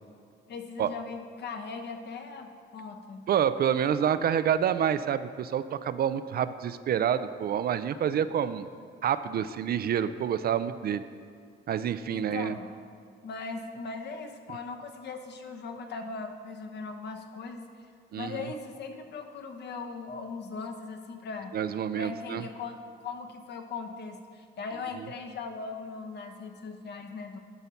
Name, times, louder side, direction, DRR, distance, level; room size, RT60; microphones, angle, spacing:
voice 1, 0.5-3.3 12.1-12.7 13.2-17.9 18.2-21.5 21.9-27.4, left 4 dB, 60° left, 4 dB, 1.0 m, -39 dB
voice 2, 3.3-8.7 9.0-11.0 11.7-12.5 18.1-18.4 21.5-22.4, right 9 dB, 50° right, 13 dB, 0.4 m, -28 dB
11.0 x 4.0 x 5.8 m, 2.3 s
cardioid pair, 90°, 20 cm